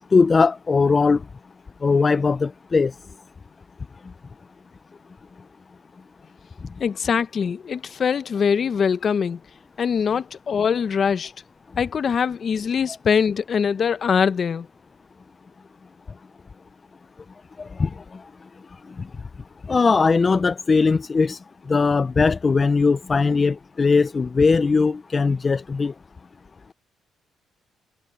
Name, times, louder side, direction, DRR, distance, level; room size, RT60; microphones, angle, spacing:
voice 1, 0.1-1.2 1.8-2.9 17.8-17.9 19.7-21.4 21.7-25.9, left 4 dB, 35° left, 0.5 m, -19 dB
voice 2, 6.8-9.4 9.8-11.3 11.8-14.7, left 6 dB, 50° left, 0.9 m, -22 dB
cardioid pair, 90°, 0 cm